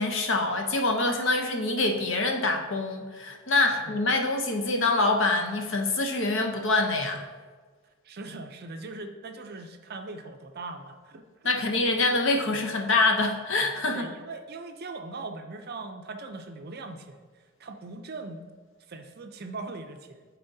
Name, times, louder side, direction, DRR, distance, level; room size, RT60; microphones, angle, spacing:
voice 1, 0.0-7.2 11.4-14.1, left 2 dB, 55° left, 3 dB, 0.8 m, -25 dB
voice 2, 8.0-11.6 13.9-17.2 17.6-18.5 18.9-20.3, right 3 dB, 45° right, 6 dB, 0.5 m, -40 dB
11.5 x 4.3 x 2.7 m, 1.4 s
head